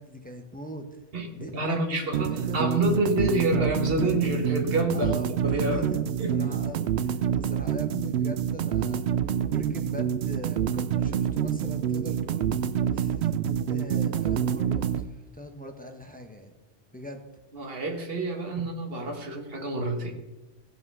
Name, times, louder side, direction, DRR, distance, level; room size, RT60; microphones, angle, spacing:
voice 1, 0.0-1.0 1.3-2.6 4.9-9.0 9.5-13.3 13.7-16.5 16.9-17.2, equal, 10° left, 4 dB, 0.9 m, -41 dB
voice 2, 1.5-5.1 5.4-5.9 6.2-6.5 17.5-20.1, right 1 dB, 55° right, 3 dB, 1.7 m, -27 dB
sound 1, 2.1-15.1, right 8 dB, 70° right, 0.8 m, -27 dB
16.0 x 5.5 x 5.5 m, 1.1 s
omnidirectional pair, 1.2 m